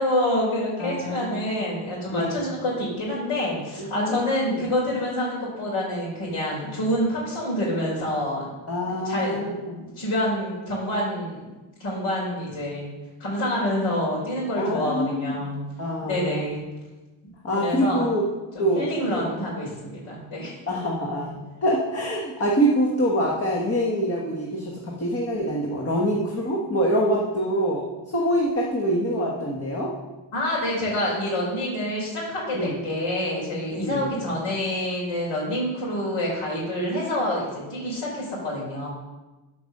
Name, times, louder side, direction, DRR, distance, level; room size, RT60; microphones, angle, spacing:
voice 1, 0.0-8.5 9.0-11.4 11.8-12.9 13.2-15.6 16.0-16.7 17.5-18.1 18.5-20.6 30.3-38.9, left 1 dB, 75° left, -7 dB, 3.7 m, -27 dB
voice 2, 0.8-1.4 2.1-2.4 3.8-4.6 8.7-9.8 14.6-15.3 15.8-16.5 17.4-18.2 18.6-19.2 20.7-29.9 32.5-32.8 33.7-34.1, equal, 30° left, -2 dB, 1.4 m, -25 dB
12.5 x 5.3 x 6.6 m, 1.2 s
cardioid pair, 170°, 47 cm